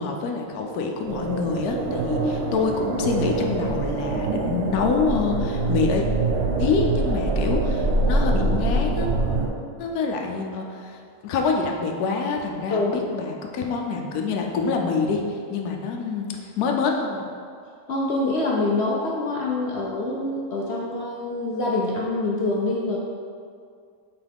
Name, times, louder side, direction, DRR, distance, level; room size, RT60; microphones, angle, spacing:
voice 1, 0.0-6.1 6.6-9.1 9.8-17.2, left 4 dB, 75° left, 1 dB, 1.1 m, -26 dB
sound 1, 1.1-9.5, right 2 dB, 55° right, 0.7 m, -24 dB
voice 2, 17.9-23.0, left 2 dB, 60° left, -3 dB, 0.7 m, -25 dB
5.9 x 4.6 x 3.5 m, 2.2 s
omnidirectional pair, 1.7 m